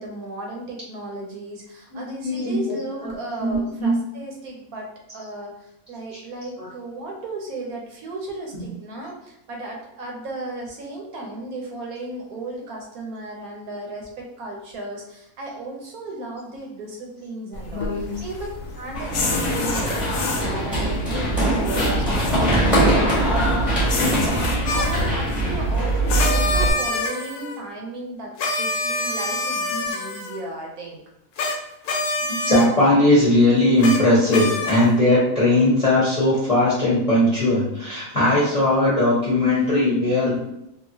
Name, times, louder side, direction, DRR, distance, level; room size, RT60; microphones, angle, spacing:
voice 1, 0.0-18.4 18.8-31.0, right 2 dB, 75° right, 0 dB, 1.1 m, -35 dB
voice 2, 1.9-3.1 3.4-3.9 6.6-6.7 8.5-8.6 17.7-18.1 19.1-19.3 32.4-40.4, left 1 dB, 30° left, -9 dB, 0.8 m, -19 dB
sound 1, 17.5-26.7, left 3 dB, 90° left, 1.2 m, -30 dB
Run, 18.9-26.7, right 1 dB, ahead, 0.9 m, -22 dB
sound 2, 24.7-25.1 26.2-27.6 28.4-30.4 31.4-31.6 31.8-32.7 33.8-34.0 34.3-34.9, left 2 dB, 65° left, 0.9 m, -26 dB
2.8 x 2.4 x 2.6 m, 0.83 s
omnidirectional pair, 1.6 m